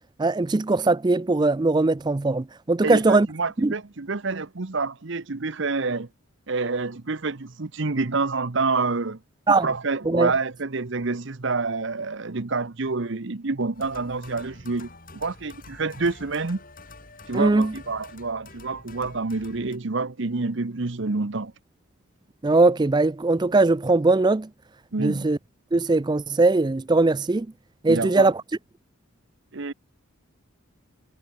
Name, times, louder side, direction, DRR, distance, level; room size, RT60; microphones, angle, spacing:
voice 1, 0.2-3.3 3.6-3.7 9.5-9.7 10.1-10.3 17.3-17.7 22.4-24.5 25.0-25.4 25.7-27.5 27.8-28.3, right 3 dB, 20° right, 0.4 m, -20 dB
voice 2, 2.8-6.1 6.5-9.2 9.6-16.6 17.3-21.5 24.9-25.3 27.9-28.3 29.5-29.7, right 3 dB, 60° right, 0.9 m, -28 dB
sound 1, 13.7-19.8, left 3 dB, 40° left, 5.1 m, -47 dB
head